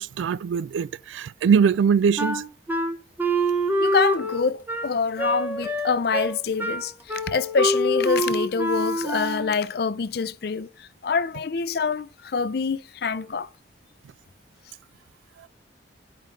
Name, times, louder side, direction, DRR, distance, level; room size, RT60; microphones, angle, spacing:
voice 1, 0.0-2.4, right 6 dB, 85° right, 0.3 m, -22 dB
Wind instrument woodwind instrument, 2.2-9.6, right 1 dB, 10° right, 0.8 m, -26 dB
voice 2, 3.8-13.5, left 5 dB, 55° left, 0.5 m, -26 dB
11.0 x 5.0 x 3.4 m
head